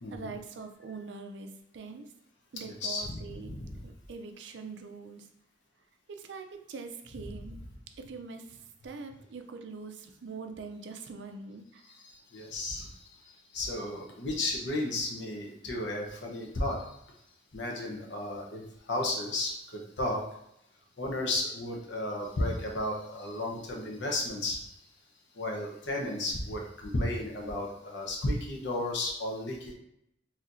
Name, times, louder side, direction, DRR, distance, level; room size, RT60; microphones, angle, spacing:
voice 1, 0.1-2.1 2.5-3.5 3.8-5.3 6.1-7.6 8.0-8.6 8.8-11.9, right 4 dB, 65° right, 5 dB, 0.4 m, -43 dB
voice 2, 2.7-3.8 11.9-13.2 13.5-16.9 17.5-20.2 21.0-24.7 25.3-29.7, left 1 dB, 70° left, -1 dB, 0.9 m, -34 dB
4.2 x 2.8 x 2.6 m, 0.79 s
head